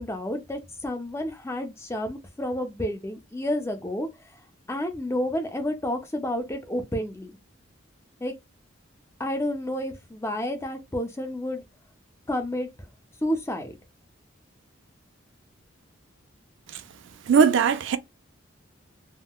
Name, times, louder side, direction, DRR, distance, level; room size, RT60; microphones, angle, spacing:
voice 1, 0.0-4.1 4.7-7.3 8.2-8.3 9.2-11.6 12.3-12.7 13.2-13.7, left 1 dB, 15° left, 0.5 m, -30 dB
voice 2, 17.3-18.0, right 6 dB, 65° right, 0.4 m, -19 dB
3.6 x 2.1 x 2.2 m
head